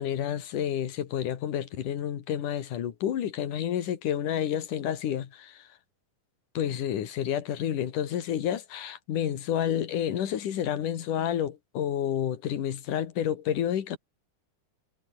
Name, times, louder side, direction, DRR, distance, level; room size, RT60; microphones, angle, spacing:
voice 1, 0.0-5.7 6.5-14.0, left 10 dB, 75° left, 3.4 m, -30 dB
omnidirectional pair, 3.7 m